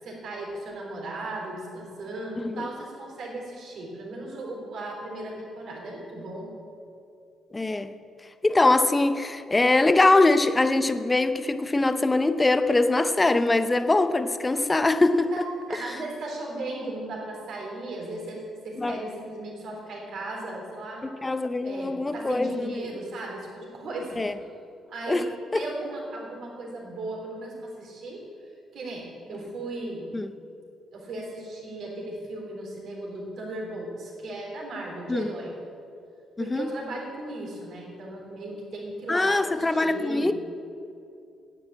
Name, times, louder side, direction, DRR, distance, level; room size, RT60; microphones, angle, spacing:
voice 1, 0.0-6.5 15.3-15.4 15.7-21.0 21.6-24.2 24.9-25.3 25.5-28.2 28.7-30.1 30.9-35.6 36.4-40.3, right 2 dB, 70° right, -1 dB, 3.5 m, -36 dB
voice 2, 2.4-2.7 7.5-7.9 8.4-15.3 18.8-19.0 21.0-22.9 24.2-24.3 25.1-25.3 25.5-25.6 29.3-29.4 30.1-30.3 35.1-35.3 36.4-36.7 39.1-40.3, left 2 dB, 20° left, 10 dB, 0.6 m, -23 dB
9.7 x 8.3 x 8.6 m, 2.5 s
cardioid pair, 90°, 0 cm